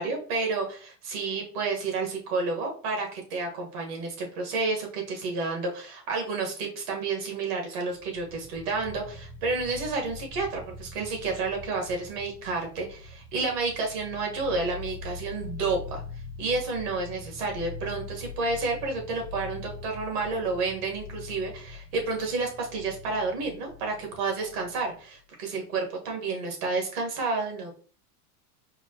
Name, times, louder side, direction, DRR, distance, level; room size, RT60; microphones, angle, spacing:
voice 1, 0.0-16.0 16.4-27.7, right 3 dB, 75° right, 1 dB, 1.6 m, -30 dB
sound 1, 7.8-25.2, left 4 dB, ahead, 0.6 m, -43 dB
4.7 x 2.2 x 2.9 m, 0.42 s
supercardioid pair, 125°, 46 cm